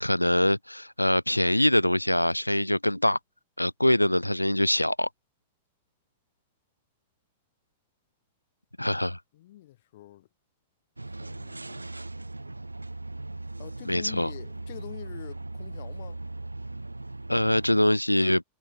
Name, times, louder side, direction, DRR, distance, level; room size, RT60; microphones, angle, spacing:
voice 1, 0.0-3.2 3.6-5.1 8.8-9.2 13.9-14.3 17.3-18.4, left 1 dB, 85° left, 0.4 m, -24 dB
voice 2, 9.3-10.3 11.0-11.9 13.6-16.2, left 14 dB, 55° left, 3.2 m, -45 dB
sound 1, 11.0-17.8, right 2 dB, 85° right, 0.4 m, -39 dB
figure-of-eight pair, 90°, 0 cm